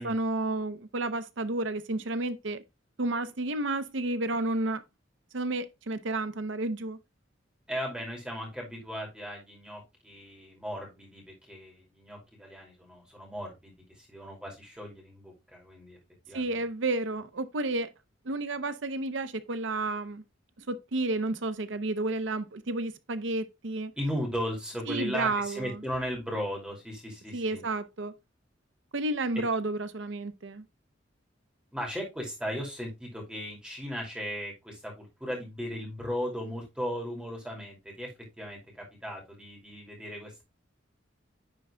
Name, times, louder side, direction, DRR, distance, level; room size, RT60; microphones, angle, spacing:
voice 1, 0.0-2.6 3.0-4.8 5.3-7.0 16.3-17.9 18.2-20.2 20.7-23.9 24.9-25.8 27.3-28.1 28.9-30.6, right 2 dB, 70° right, 0.7 m, -31 dB
voice 2, 7.7-16.0 16.3-16.6 24.0-27.6 29.4-29.5 31.7-38.1 38.4-40.4, equal, 5° right, 2.4 m, -37 dB
9.9 x 3.8 x 3.3 m
head